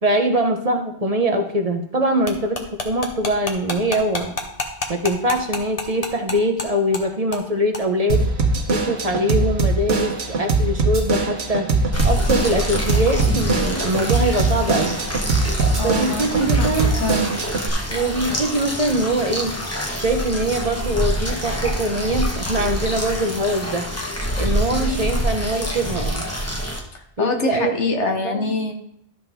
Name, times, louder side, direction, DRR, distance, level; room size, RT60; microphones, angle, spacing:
voice 1, 0.0-4.3 4.9-8.2 8.7-11.7 12.0-14.9 15.8-16.9 17.9-19.6 20.0-23.9 24.4-26.2 27.2-27.7 28.0-28.5, right 1 dB, 35° right, 5 dB, 0.9 m, -22 dB
sound 1, 2.3-6.7 6.9-7.0 7.3-7.5 7.7-7.8, left 2 dB, 35° left, 1.2 m, -27 dB
Drum kit / Drum, 8.1-17.7, right 3 dB, 70° right, 1.3 m, -21 dB
sound 2, 11.9-26.8, equal, 15° left, 1.1 m, -26 dB
voice 2, 15.8-17.3 24.7-24.8 26.9-28.7, left 3 dB, 90° left, 4 dB, 1.5 m, -25 dB
12.5 x 5.7 x 3.6 m, 0.71 s
omnidirectional pair, 1.2 m